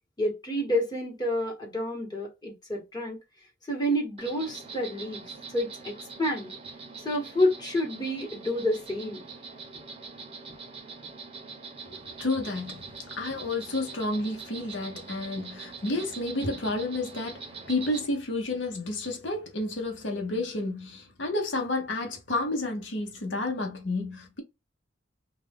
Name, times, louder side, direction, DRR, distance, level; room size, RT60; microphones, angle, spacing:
voice 1, 0.2-3.2 3.7-5.2 5.5-5.9 6.2-6.5 7.0-9.2, left 1 dB, 20° left, 1.2 m, -29 dB
Insect, 4.2-18.1, right 4 dB, 30° right, 0.7 m, -43 dB
voice 2, 11.8-24.4, left 2 dB, 80° left, 0.9 m, -31 dB
2.4 x 2.3 x 3.4 m
head